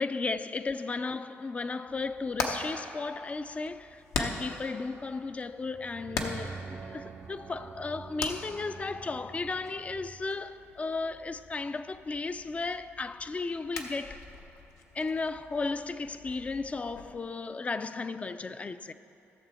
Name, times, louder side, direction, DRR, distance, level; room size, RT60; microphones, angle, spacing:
voice 1, 0.0-14.3 14.9-18.9, left 3 dB, 25° left, 0.4 m, -35 dB
Hammer, 1.9-17.1, left 3 dB, 80° left, 1.0 m, -42 dB
sound 1, 5.6-10.3, right 5 dB, 40° right, 0.5 m, -45 dB
15.5 x 6.8 x 4.3 m
cardioid pair, 85°, 5 cm